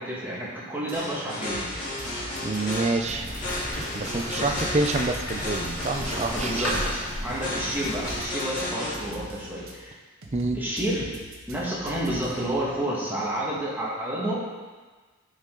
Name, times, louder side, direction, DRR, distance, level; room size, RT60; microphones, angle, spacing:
voice 1, 0.0-1.7 4.4-4.7 6.3-9.9 10.5-11.1 11.5-14.4, right 1 dB, 10° right, -7 dB, 1.9 m, -30 dB
sound 1, 0.9-8.9, left 1 dB, 35° left, 2.4 m, -33 dB
sound 2, 0.9-1.0 1.4-3.9 4.4-6.8 7.3-9.7 10.2-12.6, equal, 75° right, 1.2 m, -43 dB
voice 2, 2.4-3.3 3.9-6.7 10.3-10.6, right 3 dB, 30° right, 5 dB, 0.5 m, -27 dB
sound 3, 3.0-8.2, equal, 85° left, 2.4 m, -34 dB
10.0 x 5.3 x 3.9 m, 1.4 s
head